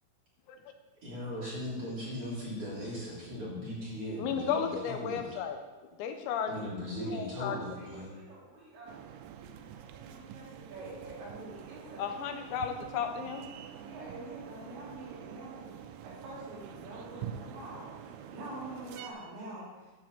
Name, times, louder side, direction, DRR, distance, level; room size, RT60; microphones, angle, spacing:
voice 1, 1.0-5.3 6.5-8.1, left 1 dB, 30° right, -8 dB, 4.1 m, -38 dB
voice 2, 4.2-5.6 6.0-6.7 7.1-7.6 12.0-13.5, left 7 dB, 75° left, 5 dB, 3.2 m, -34 dB
voice 3, 7.4-9.0 9.4-12.0 13.8-15.7 16.0-19.7, right 1 dB, 70° right, -7 dB, 5.1 m, -46 dB
sound 1, 8.9-19.1, right 9 dB, 90° right, 2.3 m, -46 dB
11.0 x 5.9 x 7.8 m, 1.2 s
omnidirectional pair, 5.5 m